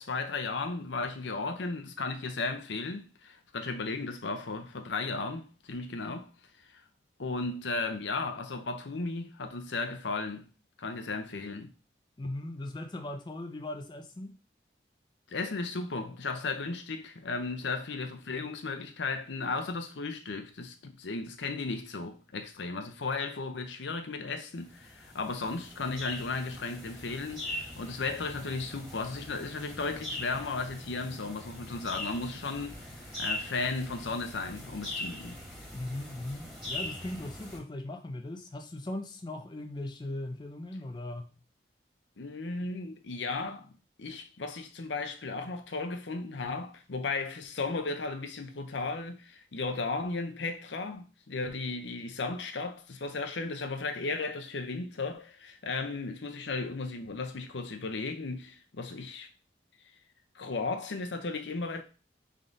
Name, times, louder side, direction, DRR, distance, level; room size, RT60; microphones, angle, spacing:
voice 1, 0.0-6.3 7.2-10.5 10.8-11.7 15.3-32.9 33.2-35.4 42.2-43.7 44.0-59.3 60.3-61.8, left 3 dB, 85° left, 0.7 m, -35 dB
voice 2, 12.2-14.3 35.7-41.4, left 1 dB, 25° left, 0.4 m, -39 dB
sound 1, 24.6-37.6, left 1 dB, ahead, 1.8 m, -41 dB
3.7 x 3.6 x 3.8 m
head